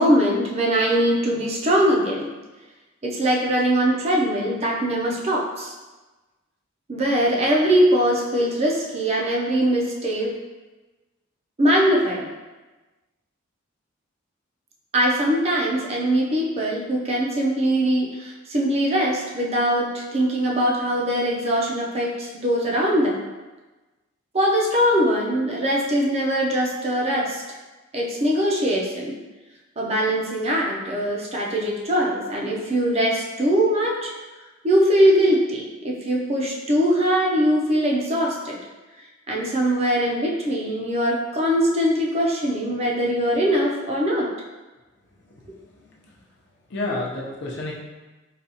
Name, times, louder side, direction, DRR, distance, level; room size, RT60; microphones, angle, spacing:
voice 1, 0.0-2.3 3.0-5.8 6.9-10.4 11.6-12.3 14.9-23.2 24.3-27.4 27.9-29.2 29.8-34.1 34.6-38.6 39.3-44.3, equal, 30° right, -2 dB, 0.4 m, -21 dB
voice 2, 45.2-46.2 46.7-47.7, left 2 dB, 60° left, -3 dB, 0.6 m, -31 dB
4.0 x 2.3 x 2.7 m, 1.2 s
head